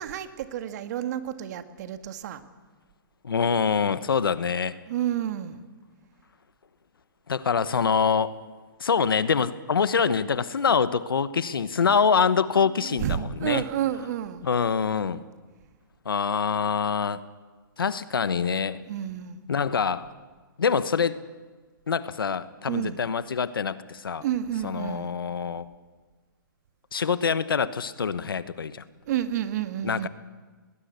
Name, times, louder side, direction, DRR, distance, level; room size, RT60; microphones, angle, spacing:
voice 1, 0.0-2.4 4.9-5.7 11.8-12.0 12.7-14.5 18.9-19.4 22.7-23.0 24.2-25.1 29.1-30.1, right 11 dB, 50° right, 9 dB, 1.6 m, -30 dB
voice 2, 3.2-4.8 7.3-8.4 8.8-13.6 14.4-15.2 16.0-17.2 17.8-18.9 19.5-20.1 20.6-21.2 21.9-24.2 24.6-25.7 26.9-28.8 29.8-30.1, left 6 dB, 85° left, 15 dB, 1.1 m, -25 dB
20.0 x 19.5 x 8.2 m, 1.4 s
hypercardioid pair, 140°, 12 cm